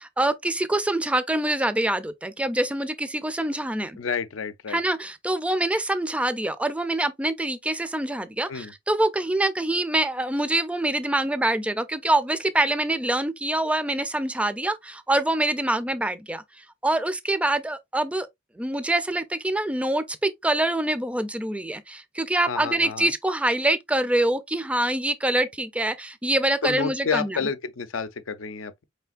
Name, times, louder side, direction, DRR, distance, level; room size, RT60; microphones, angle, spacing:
voice 1, 0.0-4.0 4.7-16.4 16.8-18.3 18.6-27.4, right 1 dB, 5° right, 0.4 m, -25 dB
voice 2, 4.0-4.8 8.5-8.7 22.5-23.1 26.6-28.8, left 5 dB, 85° left, 0.5 m, -30 dB
4.9 x 3.3 x 2.3 m
head